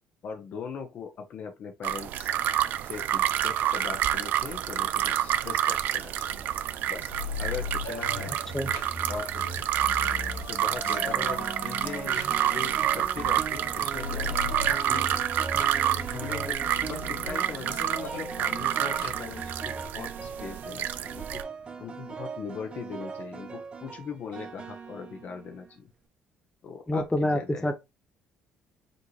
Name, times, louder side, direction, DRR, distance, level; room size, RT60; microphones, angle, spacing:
voice 1, 0.2-2.3 2.8-6.3 6.9-7.1 7.4-8.3 9.1-9.5 10.5-14.4 14.9-15.1 16.1-21.3 21.8-25.9 26.6-27.7, left 6 dB, 55° left, 0.8 m, -40 dB
sound 1, 1.8-21.4, right 11 dB, 65° right, 0.3 m, -29 dB
sound 2, 6.1-19.8, left 3 dB, 85° left, 2.0 m, -39 dB
voice 2, 8.3-8.7 26.9-27.7, left 1 dB, 15° left, 0.8 m, -27 dB
sound 3, 9.3-9.7 10.9-25.8, right 5 dB, 35° right, 1.0 m, -40 dB
5.2 x 2.6 x 3.2 m
supercardioid pair, 70°, 3 cm